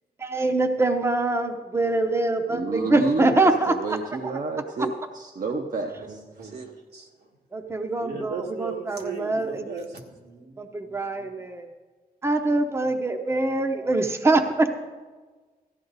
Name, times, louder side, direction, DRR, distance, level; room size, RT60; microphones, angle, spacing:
voice 1, 0.2-4.0 4.2-4.3 7.5-9.9 10.6-11.7 12.2-14.7, right 2 dB, 15° right, 5 dB, 0.7 m, -24 dB
voice 2, 2.5-6.2, right 3 dB, 55° right, 2 dB, 0.8 m, -30 dB
voice 3, 5.9-7.1 8.0-10.6 10.8-11.3, right 4 dB, 80° right, 0 dB, 1.8 m, -38 dB
14.5 x 10.5 x 4.0 m, 1.4 s
wide cardioid pair, 110°, 16 cm